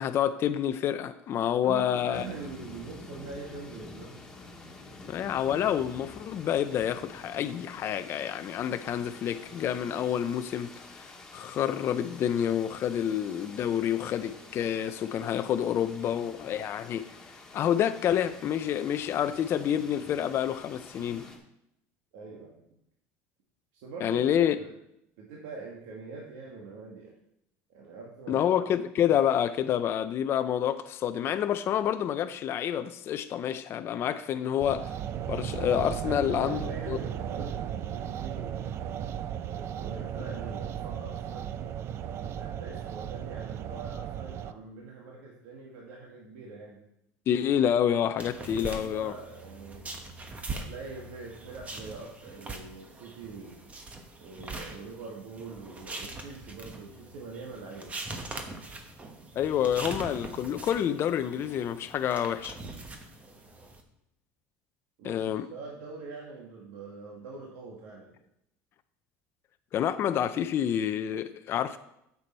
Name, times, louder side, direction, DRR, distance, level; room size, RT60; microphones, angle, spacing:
voice 1, 0.0-2.2 5.1-17.1 17.5-21.3 24.0-24.6 28.3-35.0 35.3-37.0 47.3-49.1 59.3-62.6 65.0-65.5 69.7-71.8, left 9 dB, 40° left, 0.4 m, -28 dB
voice 2, 1.6-4.2 22.1-22.6 23.7-24.3 24.6-24.7 25.2-27.1 27.7-28.4 36.0-38.7 39.4-41.5 42.1-46.8 48.6-49.8 50.5-53.6 54.2-58.0 65.0-68.2, right 4 dB, 80° right, 1.8 m, -43 dB
sound 1, 2.1-21.4, left 2 dB, 10° left, 1.7 m, -48 dB
sound 2, 34.6-44.5, right 10 dB, 45° right, 0.5 m, -36 dB
sound 3, 48.2-63.8, right 2 dB, 20° right, 1.1 m, -42 dB
9.2 x 6.9 x 4.4 m
cardioid pair, 130°, 6 cm